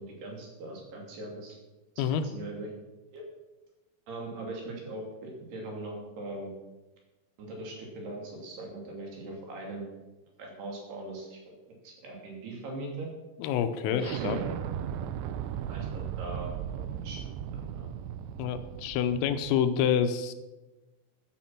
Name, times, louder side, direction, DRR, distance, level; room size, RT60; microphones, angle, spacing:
voice 1, 0.0-1.6 2.1-2.7 3.1-3.2 4.1-6.5 7.4-9.8 10.4-11.5 11.8-13.1 13.8-14.5 15.7-17.3 17.7-17.9, right 2 dB, 55° right, -1 dB, 4.4 m, -40 dB
voice 2, 13.4-14.4 18.4-20.3, left 8 dB, 80° left, 10 dB, 3.4 m, -27 dB
Explosion, 14.0-19.5, right 9 dB, 85° right, 2.5 m, -36 dB
13.5 x 9.8 x 6.0 m, 1.1 s
omnidirectional pair, 5.9 m